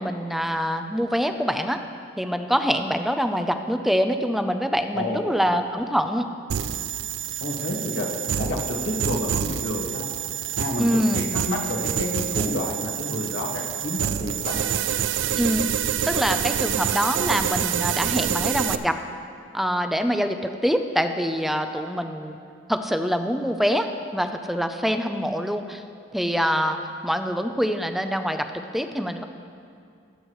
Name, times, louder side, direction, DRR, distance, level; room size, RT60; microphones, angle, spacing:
voice 1, 0.0-1.8 2.2-6.3 10.8-11.3 15.4-15.7 16.1-19.0 19.5-22.4 22.7-25.8 26.1-26.8 27.0-28.5 28.7-29.2, equal, ahead, 7 dB, 0.5 m, -25 dB
sound 1, 6.5-18.8, right 9 dB, 85° right, 0.4 m, -27 dB
voice 2, 7.4-8.1 8.4-10.1 10.6-14.8, left 1 dB, 70° left, 0 dB, 1.7 m, -29 dB
22.5 x 8.1 x 3.1 m, 2.4 s
head